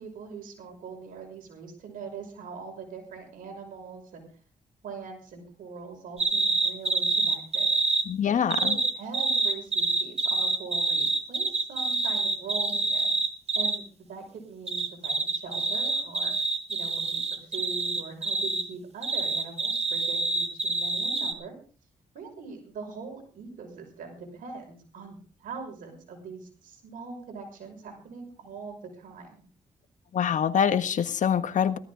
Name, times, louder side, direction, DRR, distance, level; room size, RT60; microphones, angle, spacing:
voice 1, 0.0-4.3 4.8-7.7 8.3-13.1 13.5-16.3 16.7-21.6 22.1-29.4, right 4 dB, 80° right, 3 dB, 5.8 m, -42 dB
sound 1, 6.2-8.1 8.5-13.8 14.7-18.7 19.0-21.3, right 3 dB, 50° right, 2.3 m, -27 dB
voice 2, 8.1-8.8 30.1-31.8, left 8 dB, 65° left, 11 dB, 1.5 m, -25 dB
17.5 x 13.5 x 3.9 m, 0.39 s
supercardioid pair, 55°, 14 cm